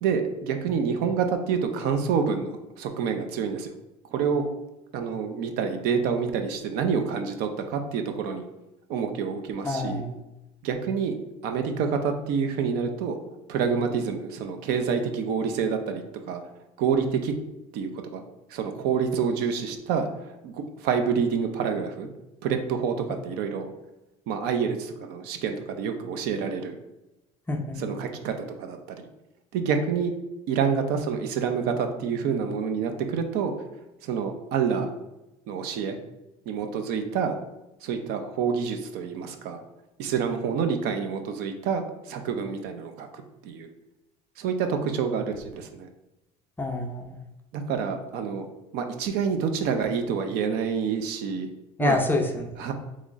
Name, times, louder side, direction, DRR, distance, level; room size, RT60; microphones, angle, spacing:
voice 1, 0.0-3.7 4.1-4.4 4.9-8.5 8.9-10.0 10.6-11.2 11.4-13.2 13.5-16.4 16.8-17.3 17.7-18.2 18.5-20.1 20.4-20.5 20.8-22.1 22.4-23.0 23.2-23.7 24.3-26.8 27.8-29.1 29.5-30.1 30.5-33.5 34.0-34.9 35.5-36.0 36.5-37.4 37.8-39.6 40.0-43.1 43.4-43.7 44.4-45.9 47.5-48.5 48.7-51.5 51.8-52.0 52.6-52.7, right 6 dB, 70° right, 6 dB, 0.5 m, -27 dB
voice 2, 9.6-10.1 27.5-27.9 46.6-47.1 51.8-52.5, left 2 dB, 10° left, 2 dB, 0.4 m, -27 dB
3.1 x 2.4 x 3.8 m, 0.97 s
cardioid pair, 120°, 17 cm